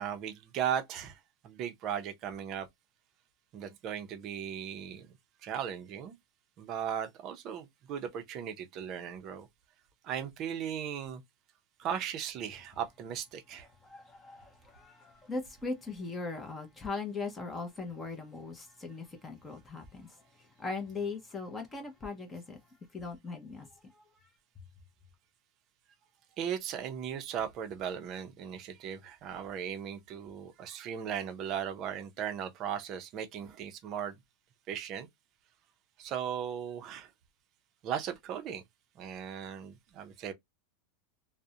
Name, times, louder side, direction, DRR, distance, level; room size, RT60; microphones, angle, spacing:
voice 1, 0.0-2.7 3.5-5.2 5.4-6.2 6.6-9.5 10.0-11.2 11.8-13.7 26.4-34.2 34.7-35.1 36.0-37.1 37.8-38.6 39.0-40.3, right 8 dB, 35° right, 0.5 m, -37 dB
voice 2, 13.8-20.2 20.6-22.6 22.9-23.7, left 3 dB, 15° left, 0.6 m, -39 dB
2.4 x 2.0 x 2.7 m
supercardioid pair, 155°, 0 cm